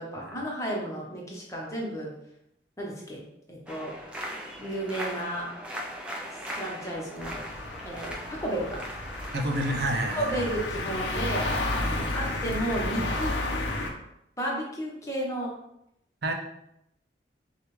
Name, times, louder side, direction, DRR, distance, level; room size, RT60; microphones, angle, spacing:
voice 1, 0.0-2.1 2.8-3.2 3.5-3.9 4.6-5.5 6.5-7.4 7.8-8.1 8.4-8.8 10.1-13.3 14.4-15.5, right 1 dB, 15° left, -3 dB, 0.9 m, -32 dB
sound 1, 3.7-13.3, equal, 5° right, 0.4 m, -41 dB
sound 2, 7.2-13.9, left 2 dB, 85° left, 0.7 m, -32 dB
voice 2, 9.3-10.5 16.2-16.3, right 1 dB, 65° right, 3 dB, 0.5 m, -29 dB
6.4 x 2.4 x 3.2 m, 0.80 s
head